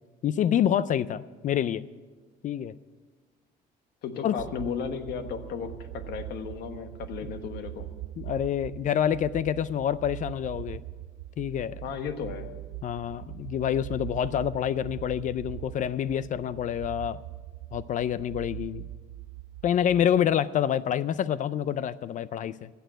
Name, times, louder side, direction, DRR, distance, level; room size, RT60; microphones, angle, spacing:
voice 1, 0.2-1.9 2.4-2.7 4.2-4.3 8.2-10.8 11.4-11.8 12.8-17.2 17.7-18.8 19.6-22.7, left 10 dB, 50° left, 17 dB, 0.4 m, -27 dB
voice 2, 4.0-7.9 11.8-12.5, left 6 dB, 75° left, 8 dB, 1.4 m, -35 dB
sound 1, 4.4-20.4, right 16 dB, 85° right, 0.5 m, -41 dB
15.5 x 6.9 x 9.3 m, 1.3 s
cardioid pair, 110°, 17 cm